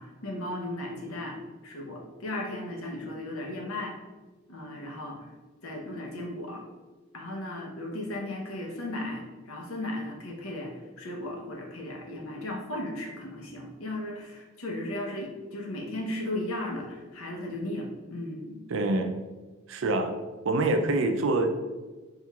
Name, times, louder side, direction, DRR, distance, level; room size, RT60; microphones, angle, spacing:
voice 1, 0.0-3.9 4.5-5.3 5.6-6.6 7.1-18.6, left 1 dB, 85° left, 0 dB, 0.8 m, -36 dB
voice 2, 18.7-19.2 19.7-20.1 20.4-21.5, right 2 dB, 65° right, 6 dB, 0.4 m, -25 dB
4.5 x 3.6 x 2.3 m, 1.3 s
head